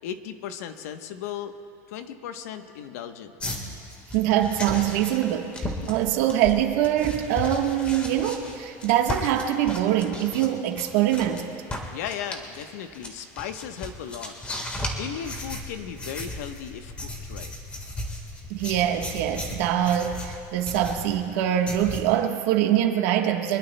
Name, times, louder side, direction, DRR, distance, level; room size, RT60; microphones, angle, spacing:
voice 1, 0.0-1.6 1.9-3.3 11.9-14.3 14.7-17.5, left 9 dB, 85° left, 8 dB, 1.0 m, -36 dB
sound 1, 3.4-11.4 11.7-22.0, left 1 dB, 15° left, 1.5 m, -36 dB
voice 2, 4.1-11.5 18.5-23.6, right 11 dB, 65° right, 4 dB, 1.3 m, -24 dB
24.5 x 21.5 x 2.2 m, 2.5 s
supercardioid pair, 170°, 8 cm